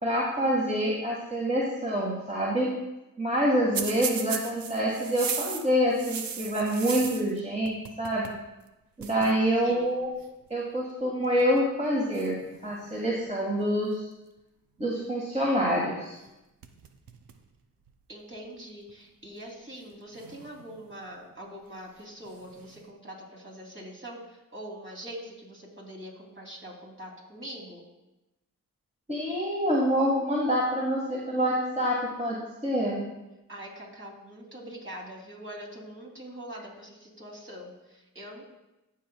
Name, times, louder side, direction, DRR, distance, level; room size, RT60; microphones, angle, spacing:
voice 1, 0.0-2.7 3.2-8.2 9.0-10.1 10.5-12.4 12.6-14.0 14.8-16.1 29.1-32.4 32.6-33.1, equal, 20° right, -5 dB, 1.9 m, -26 dB
sound 1, 3.7-7.4 7.7-8.4 8.7-8.8 9.0-9.3 10.2-10.5 11.2-11.6 12.1-13.2 16.2-16.3 16.6-17.4 17.9-18.0 18.9-19.0 20.1-21.0 22.2-22.8, right 7 dB, 80° right, 0.7 m, -37 dB
voice 2, 9.1-9.9 18.1-27.8 33.5-38.4, equal, 35° right, -3 dB, 3.1 m, -43 dB
15.0 x 5.7 x 2.3 m, 0.97 s
cardioid pair, 40°, 34 cm